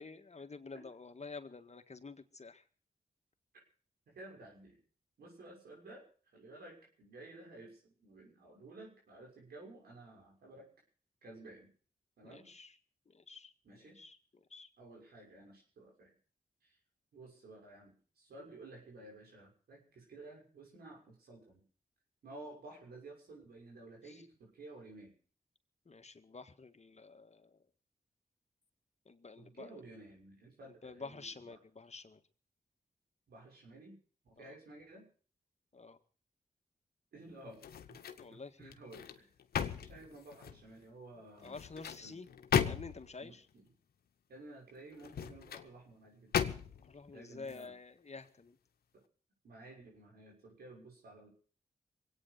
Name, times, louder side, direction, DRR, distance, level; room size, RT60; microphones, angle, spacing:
voice 1, 0.0-2.6 12.2-12.7 13.1-14.2 14.5-14.7 24.0-24.2 25.8-27.5 29.0-29.8 30.8-32.2 34.4-34.6 35.7-36.0 38.2-38.7 41.4-42.3 42.6-43.4 46.8-48.6, left 4 dB, 45° left, 8 dB, 1.7 m, -49 dB
voice 2, 4.1-4.8 5.2-6.0 6.3-10.7 11.2-11.7 12.2-12.5 13.6-14.0 14.8-16.1 16.6-16.8 17.1-21.6 22.2-25.1 29.4-31.6 33.3-34.0 34.2-35.1 37.1-37.6 37.9-38.0 38.3-39.3 39.8-41.6 42.0-42.2 43.2-43.7 44.3-46.3 47.1-47.7 49.4-51.3, right 2 dB, 85° right, -1 dB, 6.5 m, -53 dB
sound 1, 37.5-38.3 38.7-40.7 41.4-43.2 44.9-45.7 46.3-46.9 47.4-47.6, left 8 dB, 85° left, 1.0 m, -36 dB
21.5 x 9.1 x 6.7 m, 0.42 s
cardioid pair, 40°, 16 cm